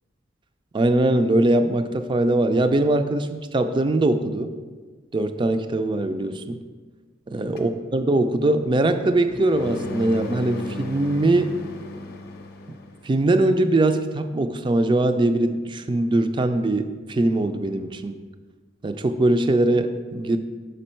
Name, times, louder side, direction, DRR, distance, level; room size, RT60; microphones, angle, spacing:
voice 1, 0.7-4.5 5.1-6.6 7.3-11.6 13.0-18.1 18.8-20.4, right 2 dB, 25° right, 9 dB, 0.3 m, -21 dB
sound 1, 7.6-13.1, left 1 dB, 55° left, 0.6 m, -36 dB
5.7 x 5.3 x 4.3 m, 1.4 s
head